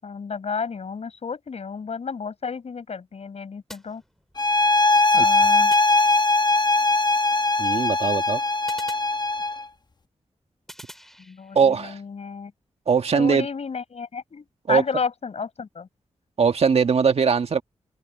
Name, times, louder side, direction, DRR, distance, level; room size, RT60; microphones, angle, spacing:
voice 1, 0.0-4.0 5.1-5.7 11.2-12.5 13.1-15.9, left 5 dB, 65° left, 7.4 m, -32 dB
sound 1, 3.7-4.6 5.7-6.6 8.7-9.8 10.7-11.7, equal, 5° left, 6.0 m, -47 dB
sound 2, 4.4-9.6, left 2 dB, 35° left, 1.0 m, -20 dB
voice 2, 7.6-8.4 11.5-12.0 12.9-13.5 14.7-14.8 16.4-17.6, right 6 dB, 60° right, 1.6 m, -20 dB
open air
cardioid pair, 65°, 12 cm